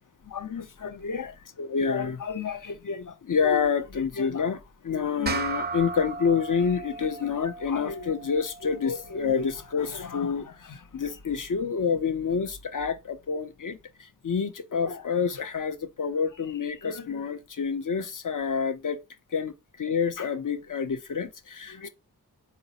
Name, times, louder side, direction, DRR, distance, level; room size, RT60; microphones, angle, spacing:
voice 1, 0.2-19.0 19.3-21.9, left 6 dB, 50° left, 0.6 m, -28 dB
sound 1, 5.3-10.0, right 4 dB, 25° right, 0.4 m, -36 dB
4.0 x 2.0 x 4.1 m
wide cardioid pair, 60°, 40 cm